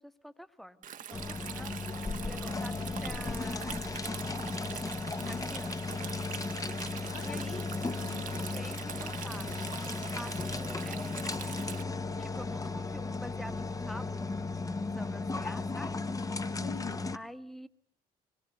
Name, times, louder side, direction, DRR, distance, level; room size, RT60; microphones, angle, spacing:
voice 1, 0.0-1.9 2.2-4.5 5.3-6.0 7.2-7.7 8.5-11.5 12.2-14.3 14.8-16.1 17.1-17.7, equal, ahead, 12 dB, 1.3 m, -47 dB
Stream, 0.8-11.8, right 9 dB, 60° right, 1.2 m, -44 dB
sound 1, 1.1-17.2, left 3 dB, 20° left, 1.0 m, -35 dB
voice 2, 4.9-5.4 7.1-8.3 16.5-17.1, left 12 dB, 90° left, 12 dB, 1.0 m, -46 dB
24.0 x 21.5 x 7.9 m, 0.62 s
cardioid pair, 85°, 16 cm